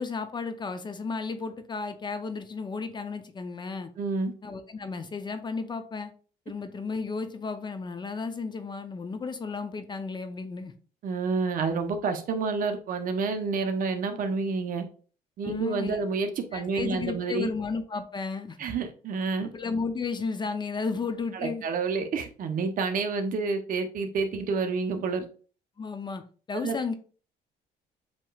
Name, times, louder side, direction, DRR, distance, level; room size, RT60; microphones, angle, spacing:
voice 1, 0.0-3.9 4.4-6.1 6.5-10.7 15.4-16.0 16.5-18.6 19.4-21.6 25.8-26.2 26.5-26.9, left 4 dB, 25° left, 0.6 m, -33 dB
voice 2, 4.0-4.3 11.0-14.8 15.4-17.5 18.6-19.5 21.3-25.3 26.6-26.7, right 4 dB, 55° right, 0.8 m, -29 dB
7.3 x 3.0 x 2.3 m
cardioid pair, 110°, 17 cm